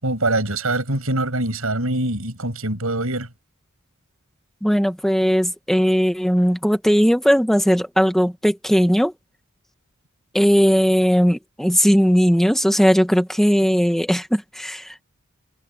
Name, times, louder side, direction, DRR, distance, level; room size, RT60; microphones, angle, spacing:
voice 1, 0.0-3.3, right 2 dB, 80° right, 6.7 m, -23 dB
voice 2, 4.6-9.1 10.3-15.0, equal, ahead, 1.8 m, -18 dB
head